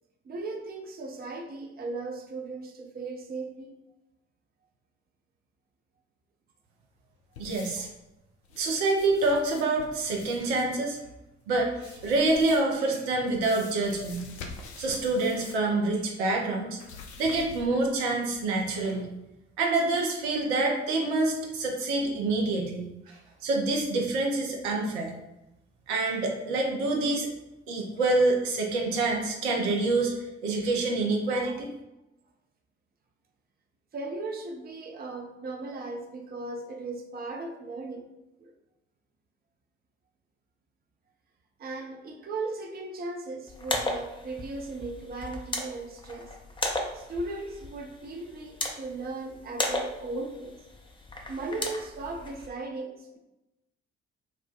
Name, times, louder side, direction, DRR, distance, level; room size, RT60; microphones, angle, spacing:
voice 1, 0.2-3.8 31.4-31.5 33.9-38.1 38.4-38.5 41.6-46.4 46.9-50.6 51.3-53.2, right 3 dB, 30° right, 2 dB, 0.6 m, -37 dB
sound 1, 7.3-8.0 8.4-10.7 11.7-12.8 13.3-15.7 16.0-16.1 16.8-17.9 18.3-18.4, left 4 dB, 75° left, 0.5 m, -46 dB
voice 2, 7.4-7.9 8.6-11.0 11.5-14.3 14.8-16.8 17.2-19.1 19.6-25.1 25.9-27.3 27.7-31.7, right 2 dB, 70° right, -1 dB, 0.7 m, -27 dB
sound 2, 43.5-52.5, left 2 dB, 15° left, 0.6 m, -36 dB
4.2 x 2.2 x 2.5 m, 0.94 s
figure-of-eight pair, 40°, 34 cm